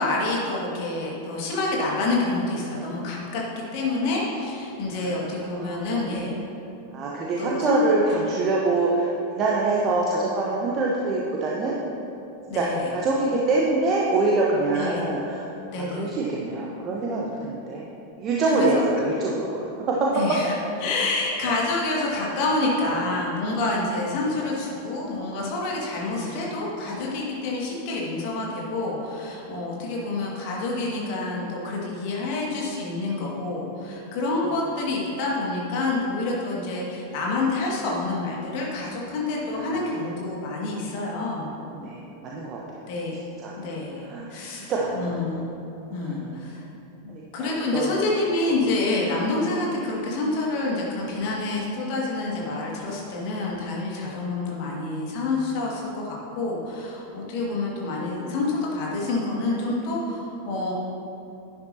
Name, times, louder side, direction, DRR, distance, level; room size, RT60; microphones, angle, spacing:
voice 1, 0.0-6.3 7.4-7.8 8.1-8.2 12.5-12.9 14.7-15.1 15.7-16.1 18.5-18.8 20.1-20.5 20.8-41.5 42.9-43.2 43.6-44.0 44.3-45.4 45.9-46.6 47.0-60.7, left 2 dB, 45° left, -3 dB, 2.2 m, -27 dB
voice 2, 5.3-6.0 6.9-11.8 12.5-17.8 18.2-19.6 19.9-20.1 22.8-23.0 24.2-24.3 26.1-26.5 29.8-29.9 39.5-39.9 41.7-42.6 43.4-43.5 44.0-45.2 45.9-46.4 47.1-48.0, right 3 dB, 30° right, -3 dB, 1.0 m, -25 dB
10.5 x 10.5 x 2.9 m, 2.9 s
figure-of-eight pair, 90°, 0 cm